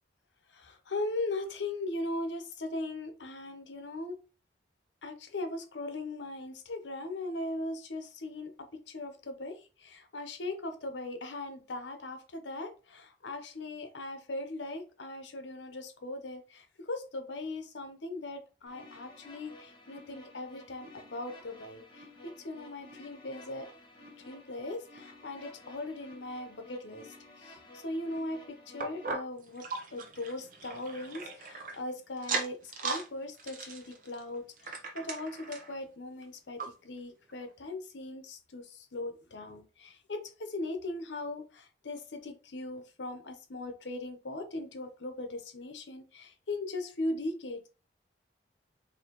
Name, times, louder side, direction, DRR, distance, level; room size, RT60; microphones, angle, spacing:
voice 1, 0.5-4.2 5.0-23.7 24.0-27.1 27.4-29.7 29.9-47.7, left 2 dB, 85° left, 7 dB, 0.9 m, -39 dB
sound 1, 18.7-29.1, left 1 dB, 25° left, 1.2 m, -53 dB
sound 2, 28.8-31.8 32.2-33.1 33.4-35.7 36.2-36.3 36.6-36.7 37.3-37.4, right 4 dB, 45° right, 0.8 m, -38 dB
4.5 x 2.9 x 3.0 m, 0.33 s
head